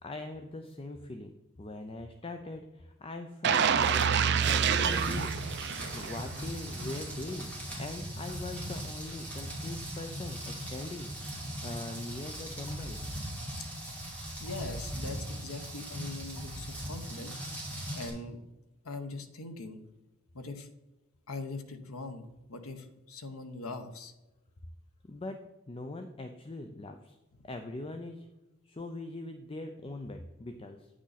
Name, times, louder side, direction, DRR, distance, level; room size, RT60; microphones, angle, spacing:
voice 1, 0.0-5.6 5.9-7.5 7.8-13.1 25.0-25.4 25.7-27.2 27.4-28.3 28.6-30.9, left 2 dB, 25° left, 6 dB, 0.4 m, -41 dB
sound 1, 3.4-6.4 6.8-7.0, right 7 dB, 50° right, 0.5 m, -27 dB
Rain, 4.9-18.1, equal, 5° left, 2.5 m, -39 dB
voice 2, 14.4-17.3 17.9-18.4 18.8-19.8 20.3-20.7 21.3-22.2 22.5-24.1, left 3 dB, 80° left, 7 dB, 1.0 m, -41 dB
9.2 x 6.2 x 4.1 m, 1.0 s
head